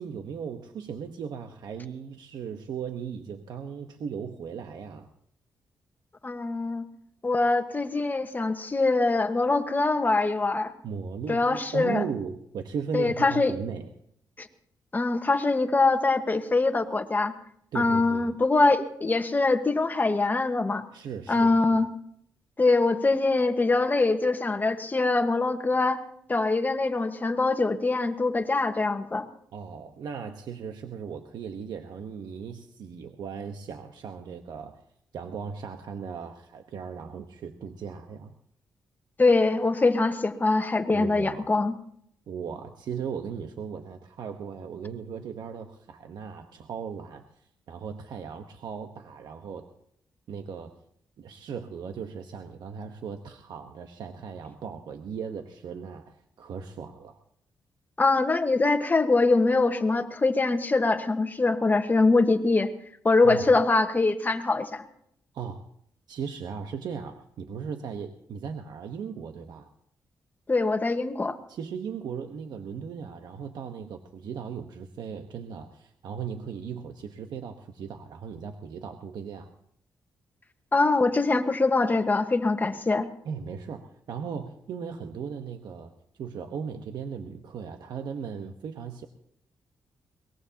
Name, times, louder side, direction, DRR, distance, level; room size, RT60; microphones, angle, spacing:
voice 1, 0.0-5.1 10.8-13.9 17.7-18.3 20.9-21.8 29.5-34.8 35.1-38.3 40.9-41.7 42.3-49.7 50.3-50.7 51.2-57.2 63.2-63.5 65.3-65.6 66.1-69.7 71.5-79.5 83.2-85.9 86.2-89.1, right 6 dB, 75° right, 5 dB, 1.1 m, -37 dB
voice 2, 6.2-6.8 7.2-10.7 11.3-12.0 12.9-13.5 14.4-14.5 14.9-17.3 17.7-20.8 21.3-21.9 22.6-26.0 26.3-29.2 39.2-41.7 58.0-62.7 63.0-64.9 70.5-71.3 80.7-83.1, left 3 dB, 25° left, 7 dB, 1.4 m, -23 dB
22.5 x 20.0 x 2.9 m, 0.70 s
cardioid pair, 95°, 7 cm